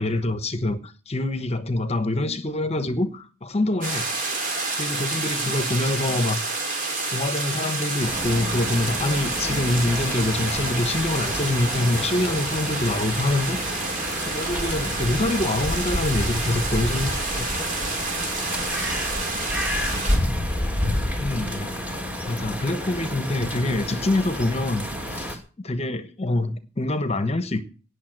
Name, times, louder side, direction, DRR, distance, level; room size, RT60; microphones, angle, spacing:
voice 1, 0.0-4.1 4.8-6.4 7.1-13.6 14.3-17.5 21.2-21.7 22.3-27.6, left 2 dB, 30° left, 1.2 m, -25 dB
sound 1, 3.8-20.2, right 3 dB, 40° right, 4.8 m, -29 dB
voice 2, 4.5-4.6, equal, 65° right, 5.3 m, -55 dB
sound 2, 8.0-25.4, equal, 5° right, 2.8 m, -29 dB
18.0 x 7.0 x 7.9 m
head